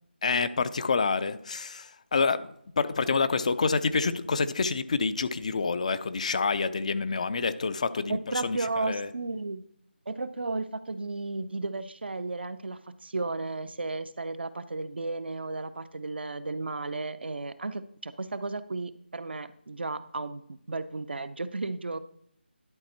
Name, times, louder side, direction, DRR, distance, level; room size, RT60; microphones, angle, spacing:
voice 1, 0.2-9.1, left 4 dB, 40° left, 14 dB, 0.4 m, -28 dB
voice 2, 8.1-9.6 10.1-22.0, right 3 dB, 65° right, 13 dB, 0.6 m, -34 dB
11.0 x 4.1 x 4.4 m, 0.68 s
figure-of-eight pair, 160°, 6 cm